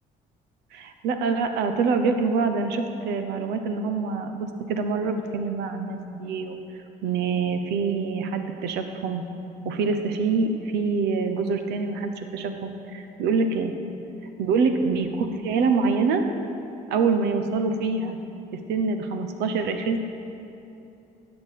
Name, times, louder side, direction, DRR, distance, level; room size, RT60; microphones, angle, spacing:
voice 1, 0.7-6.6 7.0-9.2 9.6-13.7 14.4-16.3 16.9-18.2 18.7-20.0, right 4 dB, 85° right, 7 dB, 0.9 m, -25 dB
16.5 x 6.8 x 4.2 m, 2.8 s
cardioid pair, 110°, 17 cm